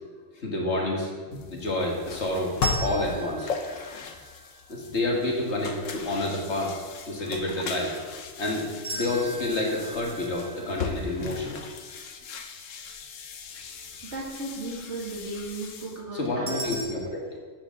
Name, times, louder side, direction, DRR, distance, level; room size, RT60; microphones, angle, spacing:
voice 1, 0.4-2.6 2.8-3.5 4.7-6.7 7.1-7.9 8.4-8.7 8.9-11.6 16.1-17.4, left 2 dB, 60° left, -1 dB, 2.0 m, -29 dB
sound 1, 1.3-16.0, left 5 dB, 80° left, 1.2 m, -37 dB
sound 2, 2.6-4.7 8.8-12.0 16.5-16.8, right 2 dB, 5° right, 2.6 m, -37 dB
voice 2, 14.0-16.5, right 2 dB, 60° right, -4 dB, 2.7 m, -35 dB
12.5 x 7.5 x 3.8 m, 1.5 s
omnidirectional pair, 1.3 m